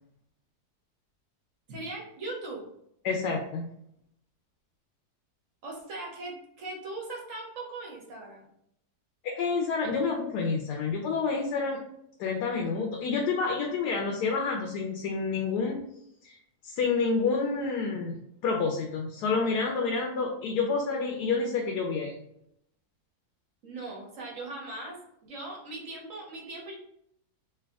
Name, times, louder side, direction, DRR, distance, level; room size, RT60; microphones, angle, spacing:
voice 1, 1.7-2.6 5.6-8.5 23.6-26.7, right 2 dB, 55° right, -1 dB, 1.2 m, -39 dB
voice 2, 3.0-3.7 9.2-11.8 12.2-15.8 16.2-16.4 16.6-22.1, left 4 dB, 80° left, 1 dB, 1.2 m, -29 dB
3.3 x 2.6 x 3.5 m, 0.75 s
omnidirectional pair, 1.7 m